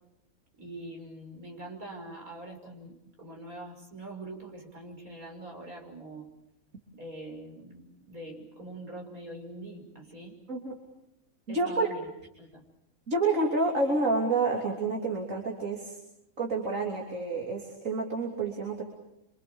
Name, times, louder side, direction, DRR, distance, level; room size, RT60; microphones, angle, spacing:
voice 1, 0.6-6.3 6.9-10.4 11.5-12.1 12.4-12.6, right 1 dB, 85° right, 0 dB, 6.4 m, -44 dB
voice 2, 11.5-11.9 13.1-16.0 16.4-18.8, right 3 dB, 70° right, 0 dB, 3.5 m, -28 dB
27.0 x 26.0 x 7.1 m, 0.85 s
omnidirectional pair, 1.4 m